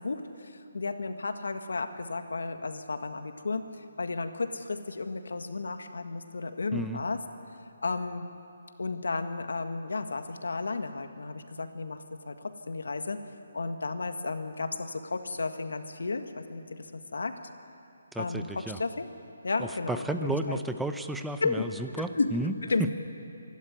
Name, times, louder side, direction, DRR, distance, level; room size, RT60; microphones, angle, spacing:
voice 1, 0.0-3.7 4.0-7.2 7.8-8.3 8.8-12.0 12.2-13.2 13.5-17.4 18.2-19.1 19.4-20.6 21.4-21.6 22.0-22.3 22.6-22.9, left 3 dB, 80° left, 8 dB, 1.7 m, -33 dB
voice 2, 18.1-18.8 19.6-22.5 22.8-22.9, right 2 dB, 5° right, 8 dB, 0.7 m, -33 dB
26.5 x 12.5 x 9.7 m, 2.8 s
hypercardioid pair, 160°, 0 cm